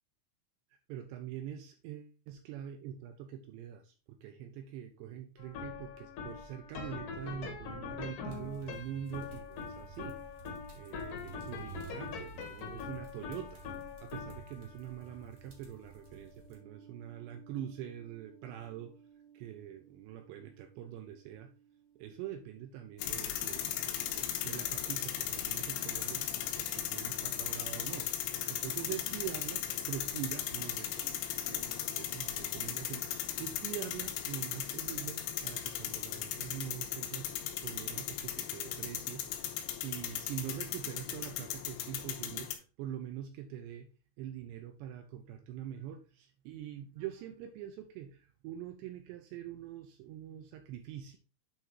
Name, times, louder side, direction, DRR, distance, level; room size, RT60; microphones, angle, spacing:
voice 1, 0.9-10.2 10.8-13.6 14.0-18.9 19.3-21.5 22.0-26.3 26.7-28.1 28.5-37.3 37.6-43.9 44.2-51.2, right 10 dB, 80° right, 5 dB, 2.6 m, -44 dB
sound 1, 5.4-22.6, left 5 dB, 65° left, 2.2 m, -46 dB
sound 2, 8.3-16.5, right 6 dB, 55° right, 1.7 m, -53 dB
sound 3, 23.0-42.6, left 10 dB, 80° left, 3.4 m, -37 dB
8.8 x 3.6 x 4.5 m, 0.32 s
omnidirectional pair, 5.6 m